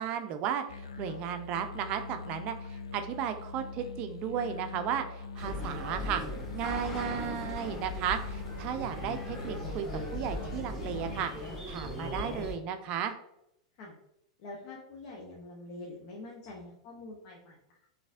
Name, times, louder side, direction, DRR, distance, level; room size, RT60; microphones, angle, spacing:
voice 1, 0.0-6.2 6.5-9.9 10.1-13.1, right 8 dB, 40° right, 8 dB, 0.4 m, -34 dB
sound 1, 0.7-11.2, left 4 dB, 80° left, 0.3 m, -43 dB
sound 2, 5.4-12.6, left 1 dB, 15° left, 1.4 m, -38 dB
voice 2, 14.4-17.9, left 2 dB, 50° left, -2 dB, 0.8 m, -45 dB
3.9 x 2.6 x 2.5 m, 0.80 s
figure-of-eight pair, 95°, 3 cm